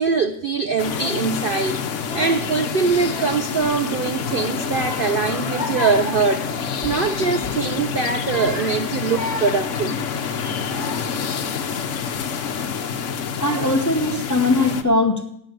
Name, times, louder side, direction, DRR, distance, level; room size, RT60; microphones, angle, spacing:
voice 1, 0.0-1.8 2.1-6.5 6.8-9.9, right 5 dB, 85° right, 8 dB, 0.4 m, -22 dB
Child speech kid speaking / Crying sobbing, 0.7-1.3 1.9-2.6 2.9-3.7 4.2-7.0 7.4-7.6 8.1-11.3 11.9-12.3 13.0-13.1 13.4-14.1, left 1 dB, 20° right, 3.1 m, -35 dB
sound 1, 0.8-14.8, left 6 dB, 55° left, 1.1 m, -27 dB
voice 2, 13.4-15.4, left 2 dB, 20° left, 8 dB, 0.5 m, -20 dB
11.5 x 9.2 x 9.3 m, 0.74 s
omnidirectional pair, 1.8 m